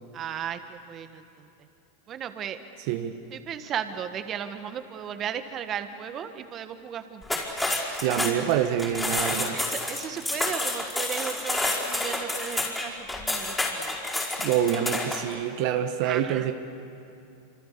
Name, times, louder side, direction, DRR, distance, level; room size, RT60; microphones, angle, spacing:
voice 1, 0.1-1.2 2.1-2.6 3.5-7.2 9.5-13.9 16.0-16.4, right 8 dB, 35° right, 9 dB, 1.6 m, -35 dB
voice 2, 2.8-3.2 8.0-9.6 14.4-16.5, right 10 dB, 60° right, 7 dB, 1.3 m, -26 dB
sound 1, 7.2-15.3, left 2 dB, 10° left, 5.0 m, -29 dB
27.5 x 26.5 x 7.0 m, 2.6 s
hypercardioid pair, 115°, 0 cm